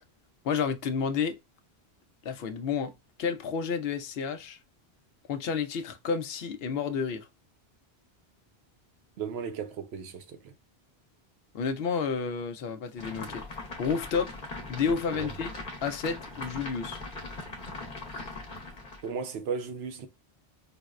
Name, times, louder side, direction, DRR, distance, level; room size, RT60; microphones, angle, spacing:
voice 1, 0.4-1.4 2.2-2.9 3.2-4.6 5.3-7.3 11.5-13.4 13.8-14.3 14.7-15.5 15.8-17.0, left 6 dB, 70° left, 0.8 m, -30 dB
voice 2, 9.2-10.5 15.1-15.3 18.1-18.3 19.0-20.1, right 6 dB, 85° right, 0.9 m, -36 dB
sound 1, 13.0-19.1, left 2 dB, 50° left, 1.0 m, -40 dB
5.0 x 2.1 x 2.4 m
omnidirectional pair, 1.1 m